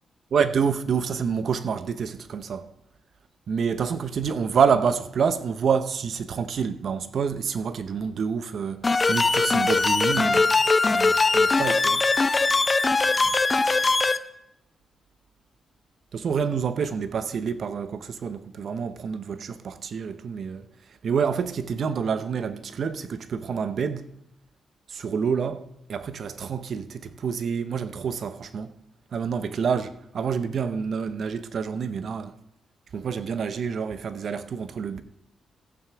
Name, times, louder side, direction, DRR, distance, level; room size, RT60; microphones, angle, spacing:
voice 1, 0.3-2.7 3.5-10.5 10.8-12.0 16.1-20.6 21.0-24.1 24.9-28.7 29.1-32.3 32.9-35.0, right 6 dB, 60° right, 0.7 m, -27 dB
sound 1, 8.8-14.2, left 3 dB, 30° left, 0.6 m, -21 dB
15.0 x 9.0 x 3.5 m
cardioid pair, 80°, 0 cm